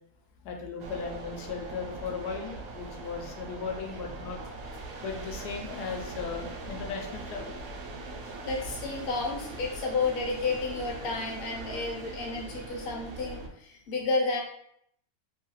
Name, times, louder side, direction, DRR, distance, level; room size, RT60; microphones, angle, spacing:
voice 1, 0.4-4.4 5.0-7.6, left 5 dB, 85° left, 3 dB, 1.2 m, -37 dB
sound 1, 0.8-13.5, right 3 dB, 70° right, 0.9 m, -41 dB
voice 2, 8.4-14.4, left 3 dB, 50° left, 0 dB, 0.7 m, -31 dB
3.1 x 2.3 x 3.0 m, 0.70 s
omnidirectional pair, 1.7 m